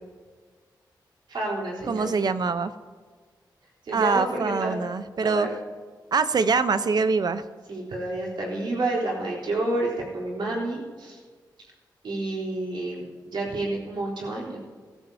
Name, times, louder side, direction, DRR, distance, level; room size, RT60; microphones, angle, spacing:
voice 1, 1.3-2.2 3.8-4.7 5.2-5.5 7.7-11.2 12.0-14.6, right 2 dB, 75° right, -4 dB, 3.7 m, -29 dB
voice 2, 1.9-2.7 3.9-5.5 6.1-7.4, right 4 dB, 55° right, 12 dB, 0.8 m, -24 dB
22.5 x 13.0 x 2.8 m, 1.5 s
cardioid pair, 75°, 8 cm